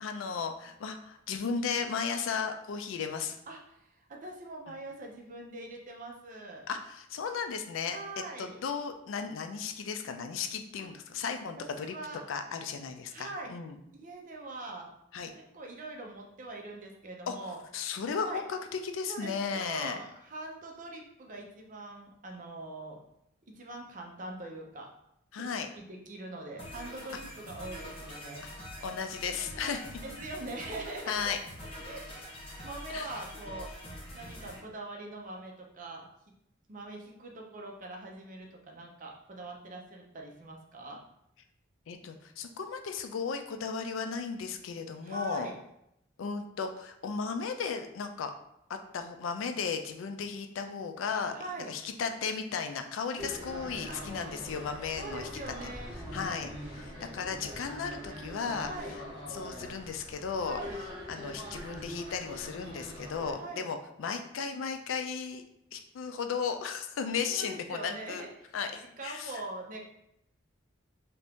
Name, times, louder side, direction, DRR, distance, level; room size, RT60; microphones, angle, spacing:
voice 1, 0.0-3.4 6.7-8.0 8.4-12.0 12.3-13.8 15.1-15.3 17.3-17.4 17.7-20.0 25.3-25.7 28.8-30.0 31.1-31.4 32.9-33.1 41.9-45.5 46.2-48.3 48.7-51.4 51.7-55.3 55.6-55.7 56.1-58.7 59.3-60.6 61.1-65.4 65.7-68.3 68.5-69.4, left 5 dB, 80° left, 7 dB, 0.4 m, -35 dB
voice 2, 3.5-6.7 7.8-8.6 11.6-12.2 13.1-13.5 14.0-14.9 15.3-17.6 18.3-18.4 19.1-23.0 23.5-24.9 25.3-25.5 25.7-28.4 29.6-29.7 30.0-31.2 31.9-33.7 34.1-36.1 36.7-41.0 45.0-45.6 51.3-51.8 53.9-54.0 54.9-55.9 58.6-59.0 60.4-60.8 63.4-63.7 67.3-68.3 68.7-69.8, right 2 dB, 40° right, 1 dB, 0.6 m, -43 dB
sound 1, 26.6-34.6, equal, 30° left, 0.8 m, -45 dB
sound 2, 53.2-63.3, equal, 25° right, 1.1 m, -43 dB
2.8 x 2.5 x 3.4 m, 0.80 s
head